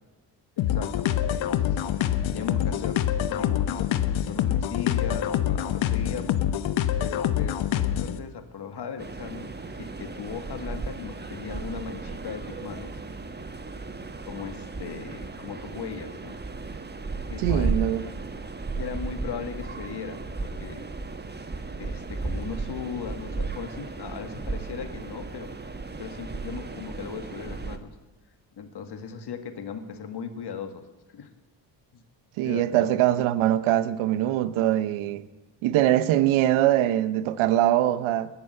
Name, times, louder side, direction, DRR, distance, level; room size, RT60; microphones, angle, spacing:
sound 1, 0.6-8.2, left 11 dB, 75° left, 1.0 m, -26 dB
voice 1, 0.6-1.8 2.3-6.4 7.0-9.5 9.8-12.9 14.3-16.4 17.3-17.8 18.8-20.8 21.8-25.5 26.0-27.9 28.6-30.8 31.1-31.3 31.9-32.0 32.4-32.9, left 6 dB, 55° left, 1.9 m, -38 dB
sound 2, 9.0-27.8, right 3 dB, 20° right, 1.4 m, -35 dB
voice 2, 17.4-18.1 32.4-35.2 35.6-38.3, right 13 dB, 85° right, 0.8 m, -22 dB
20.0 x 6.9 x 7.8 m
supercardioid pair, 60°, 47 cm